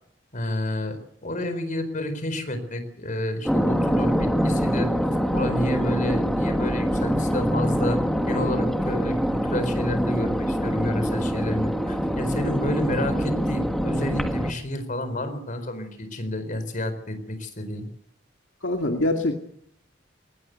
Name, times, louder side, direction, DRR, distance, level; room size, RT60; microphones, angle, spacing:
voice 1, 0.3-4.9 5.3-17.9, left 1 dB, 40° left, 9 dB, 4.4 m, -30 dB
sound 1, 3.5-14.5, equal, ahead, 1.7 m, -24 dB
voice 2, 18.6-19.4, left 1 dB, 70° left, 3 dB, 2.4 m, -24 dB
20.5 x 19.5 x 8.1 m, 0.69 s
head